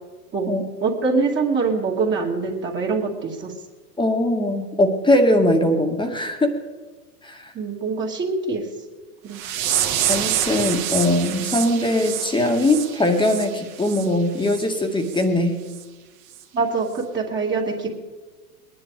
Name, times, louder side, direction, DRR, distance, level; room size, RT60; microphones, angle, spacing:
voice 1, 0.8-3.5 7.5-8.7 9.2-9.5 16.5-18.0, right 4 dB, 25° right, -2 dB, 2.5 m, -24 dB
voice 2, 4.0-6.6 7.2-7.5 10.1-15.6, left 1 dB, 10° left, 5 dB, 1.9 m, -21 dB
sound 1, 9.3-14.1 14.4-14.7 15.1-15.2 15.7-15.8 16.3-16.4, right 10 dB, 55° right, 2.3 m, -27 dB
21.0 x 10.5 x 5.1 m, 1.3 s
hypercardioid pair, 105°, 47 cm